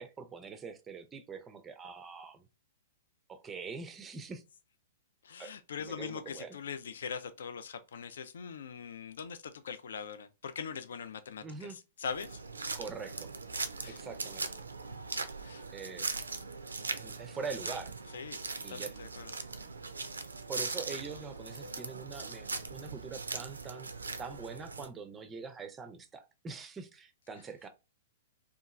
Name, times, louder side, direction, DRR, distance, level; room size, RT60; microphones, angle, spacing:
voice 1, 0.0-2.4 3.3-4.4 5.4-5.5 5.8-6.6 11.4-11.8 12.7-13.3 13.9-14.5 15.7-16.1 16.9-17.9 18.6-18.9 20.5-23.9 24.2-27.7, right 5 dB, 15° right, 0.4 m, -43 dB
voice 2, 5.2-12.4 13.8-14.0 15.4-15.6 18.1-18.4 18.7-19.3, left 6 dB, 65° left, 0.3 m, -42 dB
sound 1, 12.0-24.9, right 4 dB, 80° right, 0.3 m, -40 dB
2.8 x 2.3 x 2.4 m
figure-of-eight pair, 105°, 0 cm